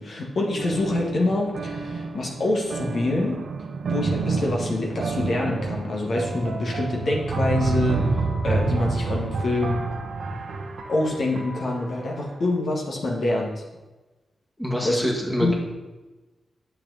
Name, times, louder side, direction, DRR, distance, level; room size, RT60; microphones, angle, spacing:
voice 1, 0.0-3.4 3.9-8.0 8.4-9.8 10.9-13.6 14.8-15.1 15.4-15.5, left 2 dB, 60° left, -2 dB, 1.7 m, -26 dB
sound 1, 0.6-12.0, right 3 dB, 70° right, 0.8 m, -28 dB
voice 2, 14.6-15.5, equal, 5° left, -2 dB, 1.9 m, -26 dB
8.7 x 7.1 x 4.0 m, 1.1 s
cardioid pair, 85°, 0 cm